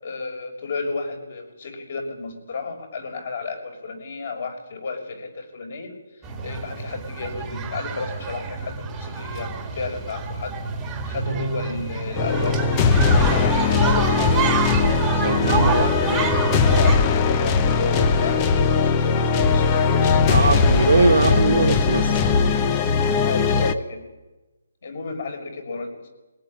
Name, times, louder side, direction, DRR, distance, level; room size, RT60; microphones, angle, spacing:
voice 1, 0.0-5.9 6.4-10.6 10.8-12.6 12.9-14.9 15.6-16.3 16.6-21.1 23.2-24.0 24.8-26.1, left 3 dB, 45° left, 6.1 m, -32 dB
sound 1, 6.2-17.0, right 5 dB, 10° right, 1.9 m, -27 dB
sound 2, 12.1-23.7, left 5 dB, 15° left, 0.9 m, -19 dB
voice 2, 15.2-16.3 20.3-22.1, right 4 dB, 80° right, 1.8 m, -21 dB
22.0 x 18.0 x 9.9 m
hypercardioid pair, 170°, 0 cm